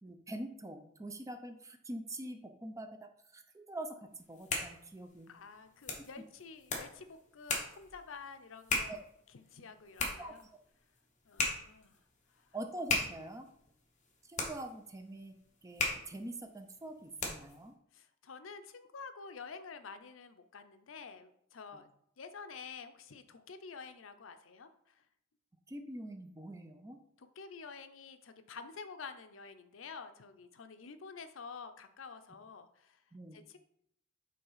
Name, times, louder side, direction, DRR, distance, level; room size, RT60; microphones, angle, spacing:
voice 1, 0.0-5.3 8.9-9.0 10.2-10.4 12.5-13.5 14.2-15.3 15.6-17.7 21.7-21.8 25.7-27.0 33.1-33.4, right 1 dB, 15° right, 6 dB, 0.6 m, -44 dB
sound 1, 4.2-17.6, left 3 dB, 40° left, 1.3 m, -39 dB
voice 2, 5.3-9.0 9.3-10.4 11.3-12.0 12.3-12.5 17.9-21.9 22.2-25.0 27.2-33.0 33.3-33.6, left 5 dB, 75° left, 10 dB, 0.6 m, -49 dB
5.6 x 3.9 x 5.6 m, 0.73 s
head